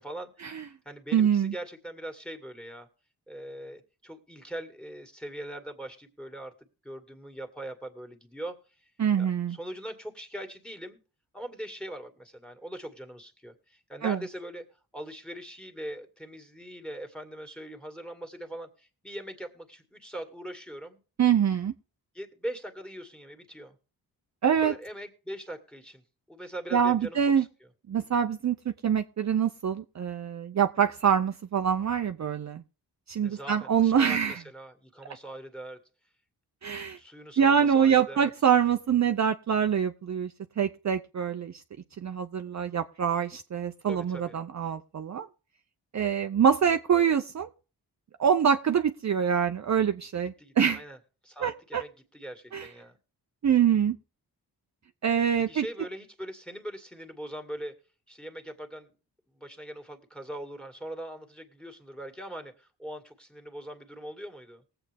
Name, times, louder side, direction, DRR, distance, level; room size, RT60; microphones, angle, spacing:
voice 1, 0.0-2.9 3.3-6.5 6.8-8.9 9.2-11.0 11.3-14.7 14.9-21.0 22.1-23.8 24.6-26.0 26.3-27.5 33.2-35.8 36.9-38.3 43.9-44.4 50.4-51.0 51.2-53.0 55.3-57.7 58.1-58.9 59.3-64.6, right 1 dB, ahead, 5 dB, 2.1 m, -41 dB
voice 2, 1.1-1.5 9.0-9.6 14.0-14.2 21.2-21.7 24.4-24.7 26.7-27.4 27.9-28.6 28.8-32.6 33.1-34.4 36.6-37.0 37.4-41.5 42.0-45.3 45.9-47.5 48.2-50.8 51.4-51.8 52.5-52.7 53.4-54.0 55.0-55.7, right 8 dB, 45° right, 7 dB, 0.7 m, -25 dB
19.5 x 7.8 x 3.5 m, 0.35 s
cardioid pair, 80°, 41 cm